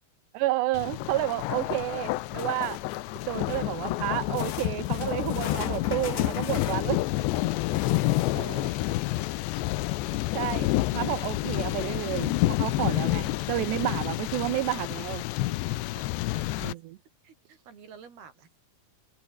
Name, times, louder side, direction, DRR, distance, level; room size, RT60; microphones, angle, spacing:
voice 1, 0.3-2.8 3.3-7.0 8.4-8.7 10.3-15.2 16.6-17.0, right 17 dB, 80° right, 3.2 m, -31 dB
Thunder, 0.7-16.7, left 18 dB, 90° left, 3.2 m, -29 dB
sound 1, 2.4-3.8 4.3-8.7 11.9-12.0 12.4-12.5 13.2-13.3, left 11 dB, 55° left, 2.8 m, -41 dB
voice 2, 8.4-9.3 10.1-10.2 15.5-16.8 17.2-18.6, right 7 dB, 65° right, 6.1 m, -52 dB
open air
omnidirectional pair, 4.9 m